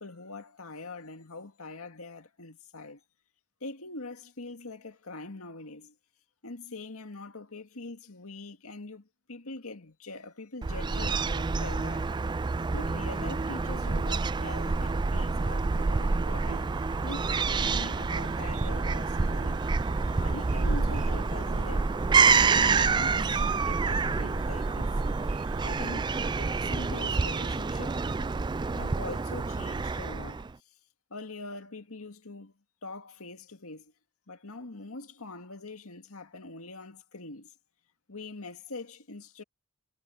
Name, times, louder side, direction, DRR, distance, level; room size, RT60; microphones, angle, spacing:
voice 1, 0.0-3.0 3.6-6.0 6.4-12.1 12.7-16.8 17.0-19.6 20.2-24.9 25.6-30.8 31.1-32.5 32.8-33.9 34.3-37.5 38.1-39.4, left 2 dB, 85° left, 2.1 m, -43 dB
Fowl / Gull seagull, 10.6-30.5, right 4 dB, 20° right, 0.3 m, -28 dB
sound 1, 16.3-25.9, right 6 dB, 75° right, 1.9 m, -48 dB
head